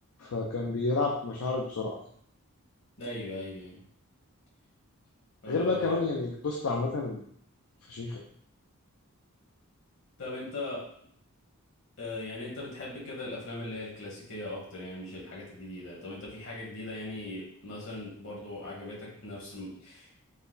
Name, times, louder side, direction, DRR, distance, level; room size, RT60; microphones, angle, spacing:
voice 1, 0.2-2.0 5.5-7.2 7.9-8.2, left 3 dB, 75° left, -1 dB, 0.5 m, -30 dB
voice 2, 3.0-3.8 5.4-6.0 10.2-10.9 12.0-20.3, left 2 dB, 60° left, -4 dB, 1.4 m, -39 dB
4.1 x 2.1 x 3.9 m, 0.64 s
head